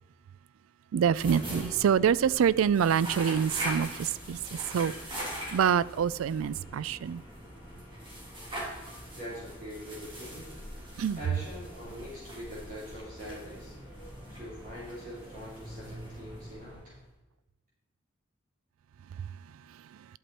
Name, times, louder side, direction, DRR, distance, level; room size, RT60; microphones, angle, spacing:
voice 1, 0.9-7.2 11.0-11.2 19.2-19.3 19.9-20.1, right 8 dB, 80° right, 0.3 m, -26 dB
sound 1, 1.0-17.1, equal, 25° right, 2.9 m, -42 dB
voice 2, 9.2-10.5 11.2-13.7 14.3-16.9, equal, 40° right, 3.8 m, -43 dB
11.5 x 8.1 x 4.4 m
head